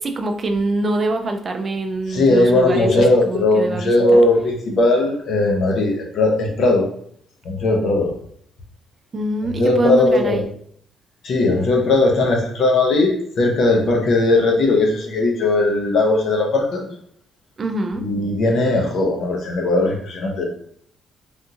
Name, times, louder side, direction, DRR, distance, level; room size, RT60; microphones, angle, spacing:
voice 1, 0.0-4.3 9.1-10.5 17.6-18.1, right 2 dB, 40° right, 5 dB, 0.4 m, -24 dB
voice 2, 2.1-6.9 7.4-8.1 9.6-10.4 11.2-16.9 18.0-20.4, left 2 dB, 65° left, 1 dB, 0.8 m, -18 dB
3.5 x 2.4 x 2.8 m, 0.64 s
cardioid pair, 90°, 0 cm